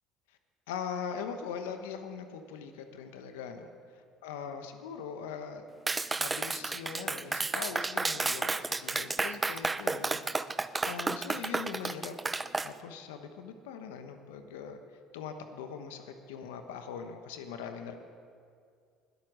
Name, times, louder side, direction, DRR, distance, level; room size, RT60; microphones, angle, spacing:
voice 1, 0.7-5.6 6.2-10.2 10.5-10.6 10.8-12.2 12.6-14.8 15.1-17.9, left 6 dB, 90° left, 7 dB, 1.0 m, -41 dB
Clapping, 5.9-12.7, right 3 dB, 20° right, 0.5 m, -32 dB
20.5 x 8.2 x 6.3 m, 2.2 s
supercardioid pair, 80°, 0 cm